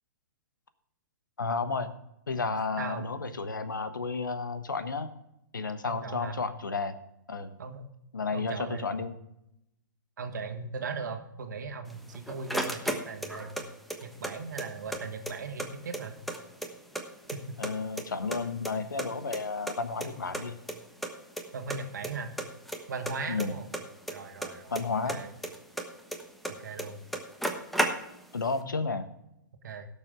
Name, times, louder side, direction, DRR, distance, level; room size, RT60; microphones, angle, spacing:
voice 1, 1.4-1.9 2.3-5.1 5.5-7.0 7.3-7.5 8.1-9.2 17.6-20.6 23.3-23.5 24.7-25.2 28.3-29.1, left 4 dB, 75° left, 12 dB, 1.2 m, -32 dB
voice 2, 2.8-3.1 5.8-6.4 7.6-7.9 8.3-9.0 10.2-13.6 14.0-16.2 17.3-17.4 21.5-22.3 22.9-23.7 24.1-24.8 25.1-25.3 26.6-27.0 29.6-29.9, right 4 dB, 65° right, 6 dB, 1.8 m, -38 dB
sound 1, 11.9-13.6 13.9-15.0 15.3-15.4 15.6-17.0 17.3-18.0 18.3-19.7 20.0-20.1 20.3-20.4 20.7-20.8 21.0-21.4 21.7-22.1 22.4-24.8 25.1-26.5 26.8-26.9 27.1-28.3, right 1 dB, ahead, 1.3 m, -33 dB
17.5 x 6.9 x 3.7 m, 0.83 s
figure-of-eight pair, 110°, 11 cm